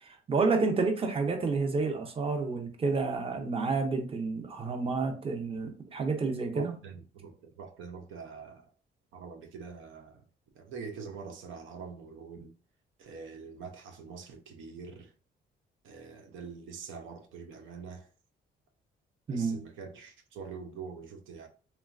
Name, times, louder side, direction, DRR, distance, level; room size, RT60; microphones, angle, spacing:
voice 1, 0.0-6.8 19.3-19.6, right 4 dB, 30° right, 0.6 m, -30 dB
voice 2, 6.5-8.7 9.1-10.2 10.6-12.5 13.0-15.1 15.8-18.1 19.3-21.5, right 5 dB, 80° right, 0.5 m, -44 dB
3.0 x 2.2 x 2.4 m
cardioid pair, 90°, 20 cm